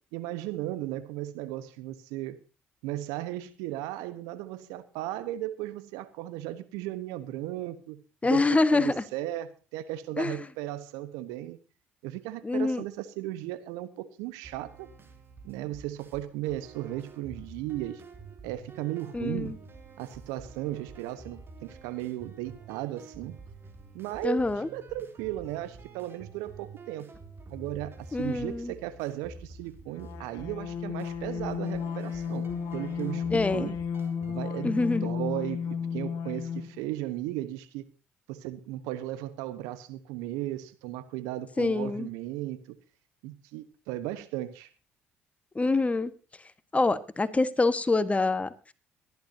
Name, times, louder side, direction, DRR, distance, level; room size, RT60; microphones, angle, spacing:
voice 1, 0.1-2.4 2.8-8.0 8.3-11.6 12.0-14.9 15.4-18.0 18.4-19.6 20.0-23.4 23.9-24.5 24.7-27.1 27.5-32.5 32.7-33.8 34.3-37.9 38.3-42.6 43.2-44.7, right 14 dB, 75° right, 1.1 m, -36 dB
voice 2, 8.2-9.0 10.2-10.4 12.4-12.8 19.1-19.5 24.2-24.7 28.1-28.7 33.3-33.7 34.6-35.1 41.6-42.1 45.5-46.1 46.7-48.7, left 3 dB, 20° left, 1.4 m, -26 dB
sound 1, 14.4-34.3, right 3 dB, 40° right, 3.1 m, -49 dB
sound 2, 30.0-36.8, left 6 dB, 65° left, 2.1 m, -33 dB
22.5 x 11.5 x 2.8 m
hypercardioid pair, 50°, 6 cm